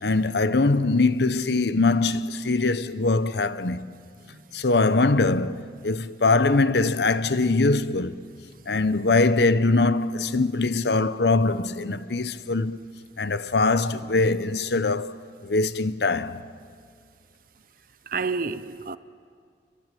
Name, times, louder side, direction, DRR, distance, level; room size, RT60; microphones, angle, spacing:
voice 1, 0.0-3.9 4.5-8.1 8.7-12.8 13.2-16.4, left 3 dB, 70° left, 0.9 m, -22 dB
voice 2, 18.1-19.0, right 4 dB, 50° right, 0.8 m, -29 dB
27.5 x 23.5 x 9.2 m
head